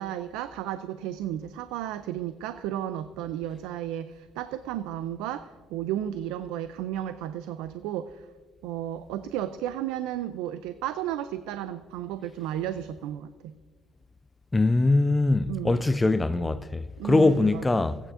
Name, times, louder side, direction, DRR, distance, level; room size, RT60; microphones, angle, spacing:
voice 1, 0.0-8.3 8.6-13.5 15.5-15.8 17.0-17.9, right 11 dB, 85° right, 0.3 m, -33 dB
voice 2, 14.5-18.0, left 2 dB, 15° left, 0.3 m, -22 dB
17.0 x 9.1 x 2.5 m
cardioid pair, 120°, 0 cm